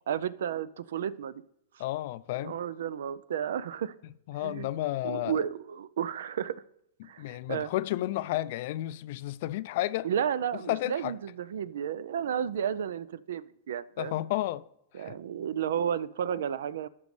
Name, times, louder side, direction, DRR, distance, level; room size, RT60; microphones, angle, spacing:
voice 1, 0.1-1.4 2.4-3.9 4.4-4.7 5.0-6.6 7.0-7.7 10.0-14.1 14.9-16.9, right 9 dB, 70° right, 0.4 m, -32 dB
voice 2, 1.8-2.6 4.3-5.4 7.0-10.1 10.7-11.2 14.0-14.7 14.9-15.2, left 15 dB, 55° left, 0.4 m, -32 dB
13.0 x 5.2 x 3.2 m
hypercardioid pair, 115°, 0 cm